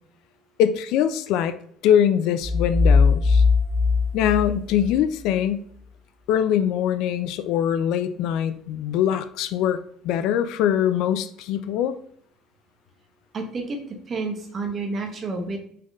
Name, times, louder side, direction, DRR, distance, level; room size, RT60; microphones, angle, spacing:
voice 1, 0.6-1.6 1.8-3.4 4.1-5.6 6.3-12.0, left 9 dB, 65° left, 0.3 m, -22 dB
sound 1, 2.4-5.3, left 4 dB, 85° right, 1.6 m, -20 dB
voice 2, 13.3-15.6, right 3 dB, 30° right, 0.8 m, -30 dB
4.1 x 3.8 x 3.1 m
cardioid pair, 165°, 0 cm